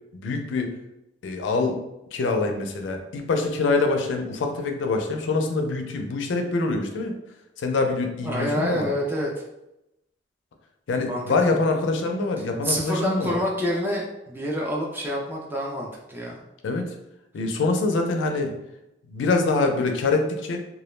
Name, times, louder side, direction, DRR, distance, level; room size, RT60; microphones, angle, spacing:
voice 1, 0.1-0.7 1.2-1.8 2.1-7.1 7.6-8.9 10.9-13.4 16.6-16.8 17.3-18.5 19.1-20.6, left 3 dB, 85° left, 4 dB, 0.4 m, -24 dB
voice 2, 8.2-9.3 11.1-11.6 12.6-16.4, equal, 10° right, -2 dB, 0.3 m, -27 dB
2.2 x 2.0 x 3.1 m, 0.89 s
head